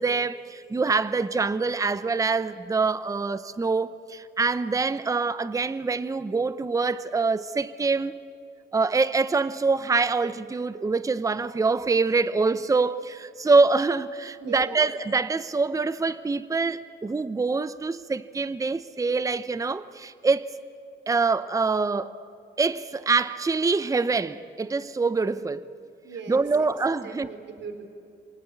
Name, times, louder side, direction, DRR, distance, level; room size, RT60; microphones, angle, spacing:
voice 1, 0.0-8.2 8.7-20.5 21.1-22.1 22.6-25.6 26.3-27.3, right 4 dB, 15° right, 0.7 m, -25 dB
voice 2, 14.4-14.8 26.0-26.7 27.0-27.8, right 4 dB, 65° right, 3.5 m, -39 dB
27.0 x 18.5 x 8.4 m
cardioid pair, 90°, 20 cm